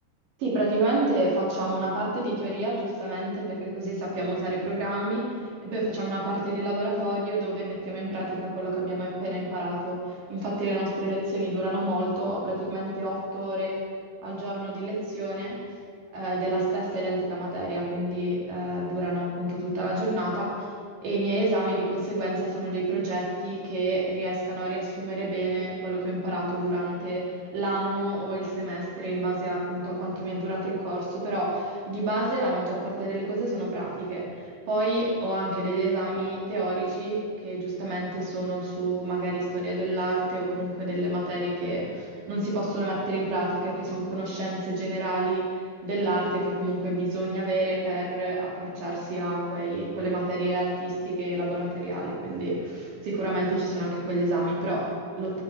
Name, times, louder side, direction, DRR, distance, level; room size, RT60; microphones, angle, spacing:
voice 1, 0.4-5.4 5.6-13.8 14.2-15.6 16.1-20.7 21.0-55.4, right 1 dB, 55° right, -4 dB, 3.9 m, -29 dB
11.5 x 10.5 x 4.7 m, 2.2 s
omnidirectional pair, 4.9 m